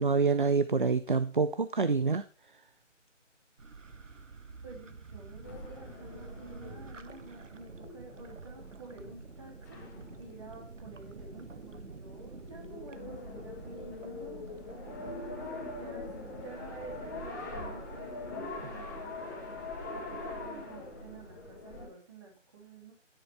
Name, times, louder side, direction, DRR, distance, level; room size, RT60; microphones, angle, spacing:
voice 1, 0.0-2.2, right 4 dB, 45° right, 13 dB, 0.5 m, -26 dB
sound 1, 3.6-21.3, right 4 dB, 75° right, 1.3 m, -49 dB
voice 2, 4.6-9.8 10.2-14.7 15.0-15.4 15.7-19.6 19.9-22.9, right 3 dB, 25° right, 0 dB, 3.0 m, -50 dB
sound 2, 5.4-21.9, left 3 dB, 15° left, 1.5 m, -43 dB
11.0 x 9.9 x 3.5 m, 0.36 s
figure-of-eight pair, 165°, 37 cm